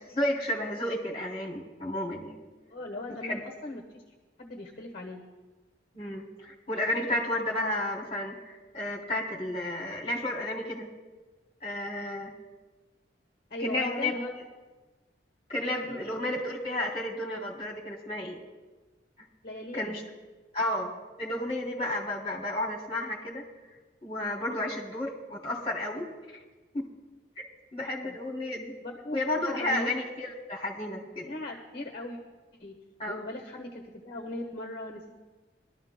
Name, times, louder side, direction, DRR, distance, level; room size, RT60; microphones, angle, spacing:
voice 1, 0.1-2.4 3.2-3.4 5.9-10.9 11.6-12.3 13.6-14.1 15.5-18.4 19.7-20.0 20.5-23.4 24.0-26.4 26.7-26.9 27.4-27.5 27.7-28.7 29.1-31.3 33.0-33.2, left 1 dB, 30° left, -3 dB, 2.7 m, -32 dB
voice 2, 2.7-4.0 4.4-5.2 13.5-14.3 15.8-16.0 19.4-20.0 27.8-28.2 28.8-29.9 31.2-32.2 32.6-32.8 33.0-35.1, left 1 dB, 50° left, 0 dB, 1.4 m, -38 dB
22.5 x 12.5 x 2.2 m, 1.2 s
head